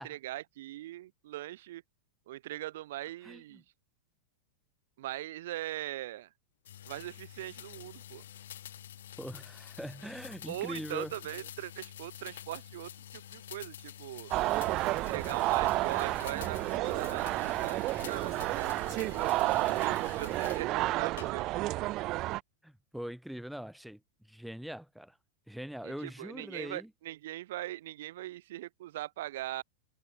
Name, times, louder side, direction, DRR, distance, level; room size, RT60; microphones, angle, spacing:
voice 1, 0.0-1.8 2.3-3.6 5.0-6.3 6.9-8.2 10.5-14.3 14.9-21.8 25.8-29.6, right 15 dB, 70° right, 1.3 m, -41 dB
voice 2, 3.2-3.6 9.2-11.1 22.6-25.2 25.5-26.9, equal, ahead, 3.9 m, -42 dB
sound 1, 6.6-20.7 21.2-21.7, left 11 dB, 85° left, 1.8 m, -48 dB
sound 2, 14.3-22.4, right 18 dB, 40° right, 0.3 m, -31 dB
hypercardioid pair, 125°, 0 cm